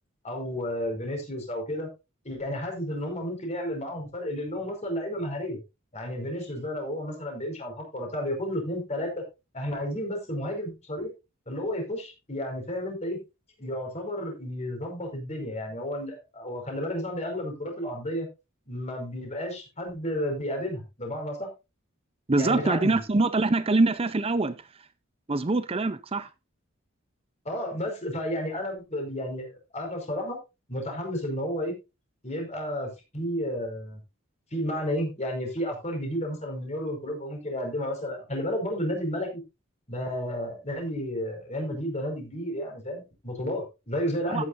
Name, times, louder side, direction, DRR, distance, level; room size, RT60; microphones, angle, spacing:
voice 1, 0.2-1.9 2.2-5.6 5.9-9.2 9.5-11.1 11.5-13.2 13.6-18.3 18.7-21.5 22.3-23.0 27.4-30.4 30.7-31.7 32.2-34.0 34.5-39.4 39.9-44.5, equal, 35° left, 2 dB, 5.1 m, -32 dB
voice 2, 22.3-24.7 25.3-26.3 44.3-44.4, right 2 dB, 30° right, 13 dB, 0.6 m, -24 dB
14.0 x 9.8 x 2.6 m, 0.26 s
head